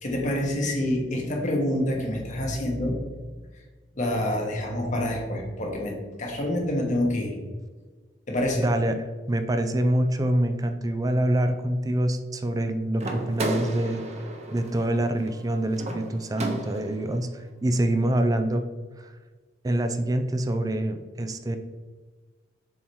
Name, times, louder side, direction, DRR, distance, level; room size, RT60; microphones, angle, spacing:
voice 1, 0.0-3.0 3.5-3.6 3.9-7.3 8.3-8.6, left 1 dB, 40° left, 0 dB, 1.3 m, -27 dB
voice 2, 8.6-18.6 19.0-19.1 19.6-21.6, right 1 dB, 20° right, 8 dB, 0.4 m, -26 dB
sound 1, 13.0-17.1, right 2 dB, 35° right, 0.8 m, -34 dB
7.1 x 2.9 x 4.6 m, 1.4 s
head